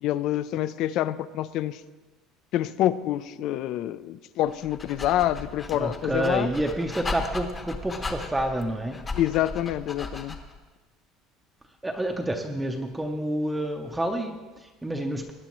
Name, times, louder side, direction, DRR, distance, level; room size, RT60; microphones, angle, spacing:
voice 1, 0.0-1.8 2.5-6.5 9.1-10.4, left 12 dB, 55° left, 16 dB, 0.4 m, -27 dB
Dog, 4.5-10.6, left 3 dB, 20° left, 0.9 m, -37 dB
voice 2, 5.8-9.0 11.8-15.3, right 1 dB, 5° right, 2 dB, 0.6 m, -29 dB
18.5 x 9.9 x 3.1 m, 1.3 s
cardioid pair, 160°, 0 cm